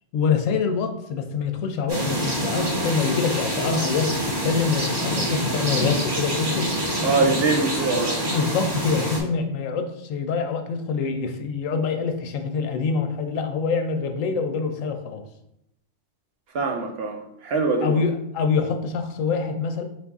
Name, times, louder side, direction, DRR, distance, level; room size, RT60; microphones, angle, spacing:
voice 1, 0.1-6.7 8.3-15.2 17.8-19.8, left 5 dB, 90° left, 6 dB, 1.0 m, -25 dB
sound 1, 1.9-9.2, equal, 25° right, 0.7 m, -26 dB
voice 2, 7.0-8.1 16.5-18.0, right 3 dB, 60° right, 3 dB, 0.7 m, -23 dB
4.8 x 2.6 x 3.5 m, 0.79 s
omnidirectional pair, 1.3 m